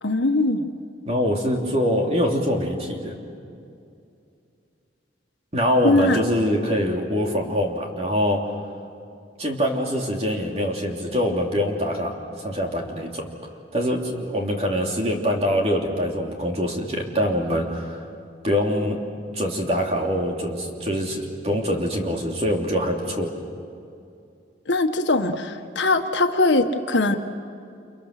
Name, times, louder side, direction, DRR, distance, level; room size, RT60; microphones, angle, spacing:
voice 1, 0.0-0.7 5.8-6.2 24.7-27.2, left 2 dB, 80° left, 6 dB, 1.5 m, -21 dB
voice 2, 1.0-3.2 5.5-8.4 9.4-13.3 13.7-18.0 18.4-19.0 19.3-23.3, equal, 35° right, 0 dB, 3.1 m, -24 dB
30.0 x 28.5 x 6.7 m, 2.5 s
head